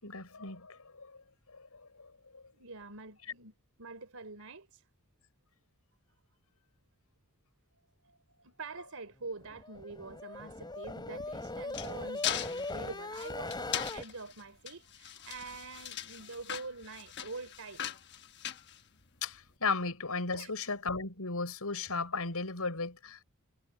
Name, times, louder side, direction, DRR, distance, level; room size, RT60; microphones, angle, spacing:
voice 1, 0.0-1.1 1.5-2.4 19.2-23.2, left 4 dB, 90° left, 5.2 m, -36 dB
voice 2, 2.5-3.5 3.8-4.8 8.0-17.8 20.3-20.5, right 3 dB, 75° right, 3.7 m, -45 dB
sound 1, 9.3-14.0, left 2 dB, 20° left, 6.4 m, -40 dB
sound 2, 11.1-19.4, left 10 dB, 55° left, 1.2 m, -40 dB
head